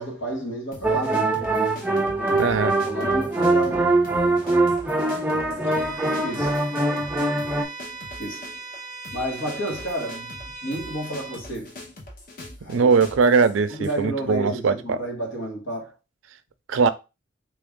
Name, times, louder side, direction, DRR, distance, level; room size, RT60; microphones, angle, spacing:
voice 1, 0.0-1.6 2.0-2.5 2.8-3.9 5.0-6.6 8.2-8.5 9.1-11.7 12.6-12.9 13.8-16.0, right 1 dB, 80° left, 1.5 m, -32 dB
sound 1, 0.7-14.0, left 2 dB, 45° left, 0.8 m, -43 dB
sound 2, 0.8-7.6, right 2 dB, 10° right, 0.4 m, -23 dB
voice 2, 2.4-2.8 12.7-15.0 16.7-16.9, right 5 dB, 80° right, 0.4 m, -20 dB
Bowed string instrument, 5.7-11.4, right 4 dB, 10° left, 1.0 m, -38 dB
3.3 x 2.5 x 3.6 m
head